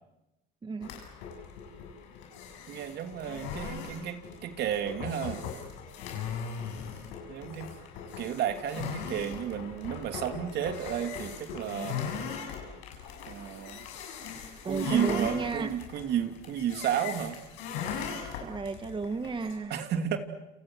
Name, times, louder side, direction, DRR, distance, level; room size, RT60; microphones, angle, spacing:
voice 1, 0.6-1.0 14.7-15.7 18.4-19.8, right 4 dB, 25° right, 8 dB, 1.7 m, -33 dB
sound 1, 0.8-19.5, left 7 dB, 85° left, 7.3 m, -40 dB
voice 2, 2.7-5.4 7.3-7.7 8.2-12.0 13.3-13.8 14.6-17.4 19.7-20.2, right 9 dB, 65° right, 6 dB, 2.9 m, -32 dB
29.5 x 29.0 x 6.3 m, 0.93 s
supercardioid pair, 90°, 19 cm